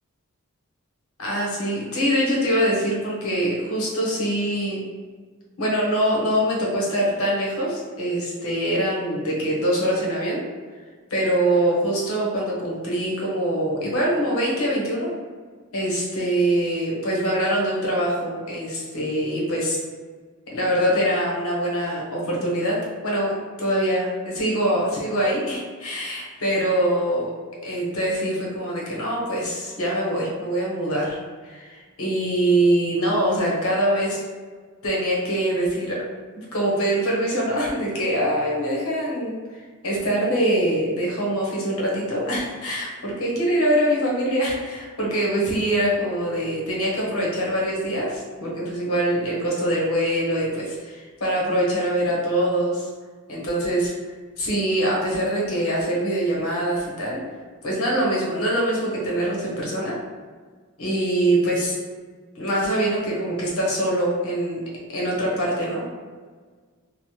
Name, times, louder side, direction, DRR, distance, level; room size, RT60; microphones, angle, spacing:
voice 1, 1.2-4.8 5.6-10.4 11.1-15.1 15.7-19.8 20.5-22.8 23.0-23.3 23.6-27.3 27.6-31.2 31.4-34.2 34.8-36.0 36.3-52.9 53.3-53.9 54.4-57.2 57.6-59.9 60.8-61.7 62.4-64.6 64.9-65.8, right 1 dB, 65° left, -4 dB, 0.8 m, -24 dB
3.1 x 2.0 x 2.8 m, 1.5 s
head